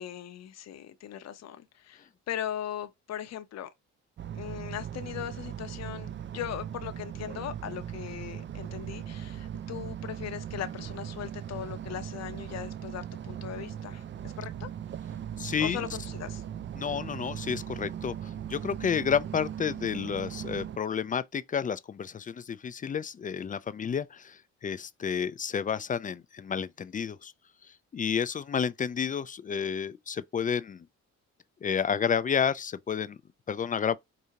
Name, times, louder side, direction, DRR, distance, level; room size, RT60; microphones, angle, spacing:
voice 1, 0.0-3.7 4.3-14.7 15.6-16.4, left 10 dB, 60° left, 0.7 m, -39 dB
sound 1, 4.2-20.8, right 9 dB, 40° right, 0.4 m, -39 dB
voice 2, 15.4-15.8 16.8-18.1 18.5-27.3 27.9-30.8 31.6-33.2 33.5-34.0, left 7 dB, 30° left, 0.3 m, -30 dB
4.9 x 2.7 x 2.8 m
cardioid pair, 90°, 30 cm